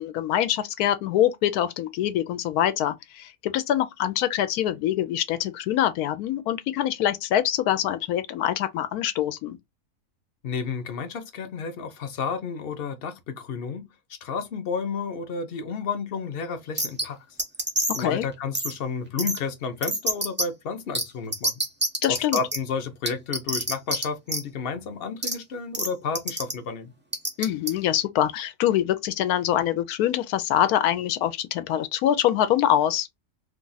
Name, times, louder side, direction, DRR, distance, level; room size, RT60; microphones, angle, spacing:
voice 1, 0.0-9.6 18.0-18.3 22.0-22.4 27.4-33.1, left 11 dB, 85° left, 1.1 m, -24 dB
voice 2, 10.4-13.9 14.2-17.2 17.9-21.6 22.1-26.9, left 5 dB, 50° left, 0.7 m, -31 dB
sound 1, 16.8-17.0 17.4-18.0 18.5-18.7 19.2-19.4 19.8-20.4 20.9-21.0 21.3-22.6 23.1-24.0 24.3-24.4 25.2-25.3 25.7-25.9 26.2-26.5 27.1-27.7, right 1 dB, 15° right, 0.4 m, -26 dB
2.7 x 2.4 x 3.8 m
omnidirectional pair, 1.6 m